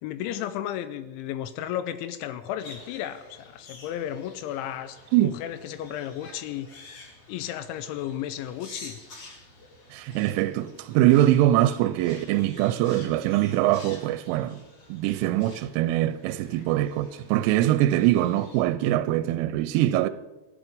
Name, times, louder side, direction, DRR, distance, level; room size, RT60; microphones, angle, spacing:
voice 1, 0.0-9.0, left 11 dB, 85° left, 2.8 m, -34 dB
sound 1, 2.6-18.6, left 2 dB, 45° left, 2.0 m, -49 dB
voice 2, 9.9-14.6 14.9-20.1, right 14 dB, 85° right, 3.0 m, -23 dB
16.0 x 11.0 x 5.1 m
omnidirectional pair, 5.7 m